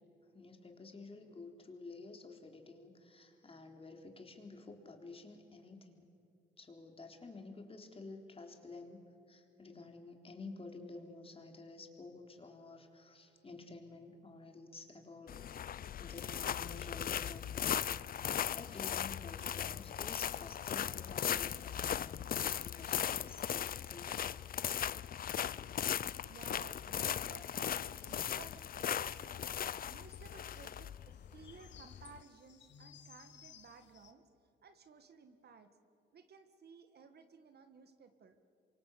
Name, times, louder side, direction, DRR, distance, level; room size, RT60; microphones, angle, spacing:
voice 1, 0.3-6.0 6.6-15.4 16.0-18.0 18.5-23.4 23.8-24.2 24.5-24.6 32.7-32.9, left 3 dB, 30° left, 4 dB, 3.9 m, -51 dB
sound 1, 15.3-32.2, left 9 dB, 45° left, 0.6 m, -38 dB
voice 2, 26.2-29.5 29.9-31.0 31.3-34.2 34.6-35.7 36.1-38.4, right 5 dB, 55° right, 9 dB, 1.8 m, -57 dB
sound 2, 27.1-34.1, left 9 dB, 65° left, 1.7 m, -61 dB
27.5 x 24.5 x 8.6 m, 2.6 s
cardioid pair, 90°, 20 cm